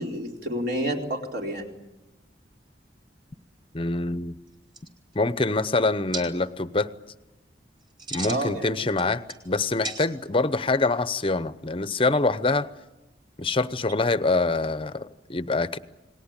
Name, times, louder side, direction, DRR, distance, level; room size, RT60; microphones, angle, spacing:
voice 1, 0.0-1.7 8.3-8.9, right 1 dB, 60° right, 1 dB, 4.4 m, -29 dB
voice 2, 3.7-4.3 5.1-6.9 8.1-12.7 13.4-15.8, left 3 dB, 30° left, 14 dB, 0.8 m, -25 dB
sound 1, 4.5-4.6 4.7-5.3 6.1-6.2 7.8-8.5 8.9-9.5 9.8-10.4, right 3 dB, 25° right, 4.1 m, -36 dB
29.0 x 20.0 x 8.9 m, 1.0 s
head